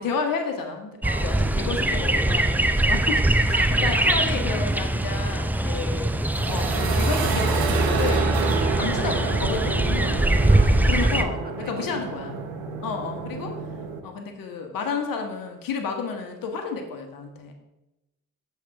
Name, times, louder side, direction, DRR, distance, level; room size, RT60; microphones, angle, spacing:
voice 1, 0.0-6.1 6.5-8.3 8.8-10.3 10.8-12.4 12.8-13.5 14.0-17.5, left 5 dB, 65° left, 4 dB, 1.3 m, -31 dB
sound 1, 1.0-11.2, right 1 dB, 5° right, 0.4 m, -22 dB
voice 2, 3.1-4.1 5.5-5.8 8.4-8.6 10.4-11.2 11.6-12.0, right 3 dB, 25° right, 6 dB, 1.1 m, -41 dB
sound 2, 6.2-14.0, right 5 dB, 75° right, 0.9 m, -29 dB
7.5 x 3.5 x 5.7 m, 0.96 s
hypercardioid pair, 50°, 37 cm